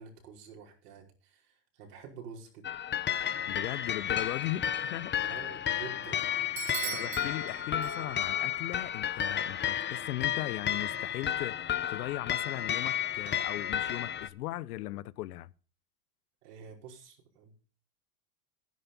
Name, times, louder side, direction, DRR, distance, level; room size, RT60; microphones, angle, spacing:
voice 1, 0.0-2.7 5.2-6.3 6.7-7.6 16.4-17.6, right 6 dB, 80° right, 5.1 m, -49 dB
sound 1, 2.6-14.3, left 10 dB, 25° left, 1.0 m, -32 dB
voice 2, 3.5-4.6 4.9-5.1 6.9-11.5 11.9-15.5, left 16 dB, 75° left, 1.0 m, -38 dB
Bell / Doorbell, 6.6-8.4, right 15 dB, 35° right, 0.9 m, -40 dB
12.0 x 11.0 x 5.6 m
hypercardioid pair, 110°, 46 cm